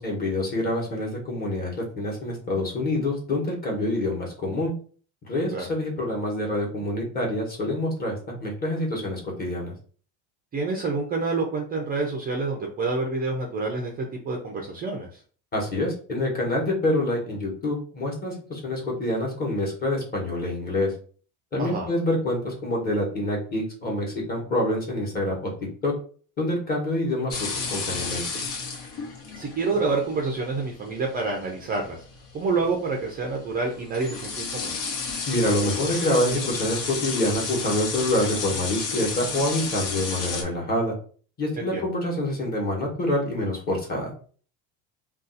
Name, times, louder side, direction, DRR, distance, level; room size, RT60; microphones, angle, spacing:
voice 1, 0.0-4.7 5.3-9.7 15.5-20.9 21.5-25.5 25.8-25.9 26.4-28.2 35.3-40.9 41.4-44.1, left 1 dB, 25° left, -2 dB, 1.1 m, -26 dB
voice 2, 10.5-13.9 14.2-15.1 21.6-21.9 29.4-32.0 32.3-34.8 41.6-41.8, right 3 dB, 25° right, 1 dB, 0.4 m, -27 dB
sound 1, 27.3-40.4, left 4 dB, 75° left, 1.1 m, -32 dB
2.6 x 2.4 x 3.8 m, 0.43 s
cardioid pair, 155°, 37 cm